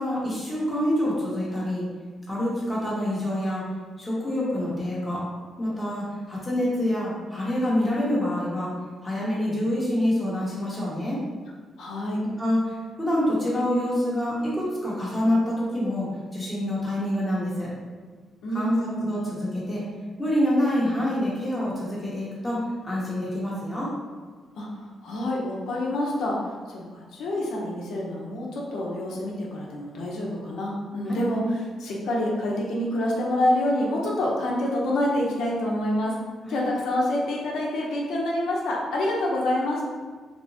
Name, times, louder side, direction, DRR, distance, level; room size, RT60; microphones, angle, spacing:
voice 1, 0.0-1.9 2.3-3.6 4.0-5.3 5.6-8.7 9.0-11.2 12.4-16.1 16.3-17.7 18.5-18.8 19.0-19.8 20.2-23.9 31.1-31.2 36.4-36.7, left 1 dB, 5° left, -7 dB, 0.8 m, -26 dB
voice 2, 11.8-12.2 18.4-19.1 24.6-26.4 26.7-36.2 36.5-39.8, left 1 dB, 80° left, -3 dB, 0.6 m, -27 dB
3.4 x 2.9 x 2.7 m, 1.5 s
cardioid pair, 160°, 0 cm